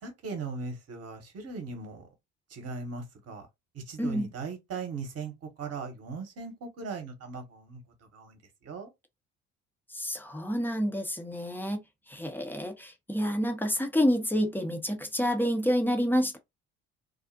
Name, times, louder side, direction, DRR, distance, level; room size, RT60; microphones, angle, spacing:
voice 1, 0.0-2.1 2.5-3.5 3.7-5.3 5.6-7.8 8.1-8.4 8.6-8.9, right 4 dB, 40° right, 1.0 m, -38 dB
voice 2, 4.0-4.3 9.9-16.4, equal, 5° left, 0.6 m, -28 dB
2.5 x 2.0 x 2.6 m
figure-of-eight pair, 55°, 38 cm